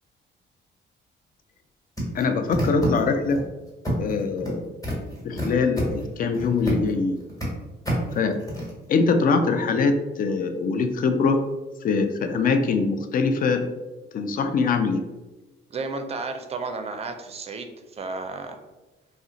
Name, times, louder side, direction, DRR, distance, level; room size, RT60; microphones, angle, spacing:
sound 1, 2.0-3.4 3.8-4.5 4.8-6.9 7.2-7.5 7.9-8.7, equal, 15° left, 1.3 m, -30 dB
voice 1, 2.1-3.4 4.0-4.7 5.2-7.2 8.1-8.4 8.9-11.4 11.8-13.7 14.1-15.1, left 4 dB, 45° left, 7 dB, 0.4 m, -23 dB
voice 2, 15.7-18.6, right 3 dB, 30° right, 6 dB, 0.4 m, -33 dB
2.4 x 2.1 x 3.8 m, 1.1 s
cardioid pair, 90°, 20 cm